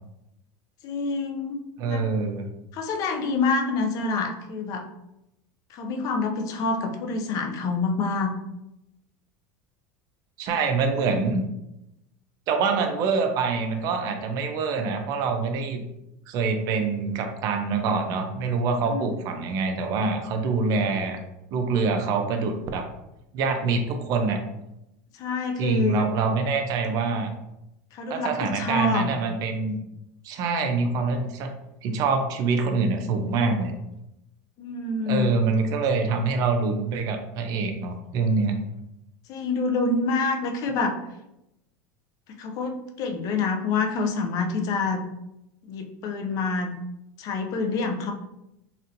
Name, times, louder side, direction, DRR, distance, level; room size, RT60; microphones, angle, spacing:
voice 1, 0.8-1.6 1.9-2.1 2.7-4.9 5.7-8.3 18.9-19.1 25.1-26.1 27.9-29.2 34.6-35.4 39.3-41.0 42.3-45.1 45.6-46.7 47.2-48.1, left 3 dB, 45° left, 4 dB, 0.6 m, -27 dB
voice 2, 1.8-2.4 10.4-11.4 12.5-15.8 16.3-21.2 21.5-22.9 23.3-24.4 25.6-27.3 28.1-29.8 30.2-31.5 31.8-33.7 35.1-38.6, right 4 dB, 50° right, 5 dB, 0.6 m, -25 dB
4.1 x 2.6 x 2.6 m, 0.87 s
supercardioid pair, 135°, 8 cm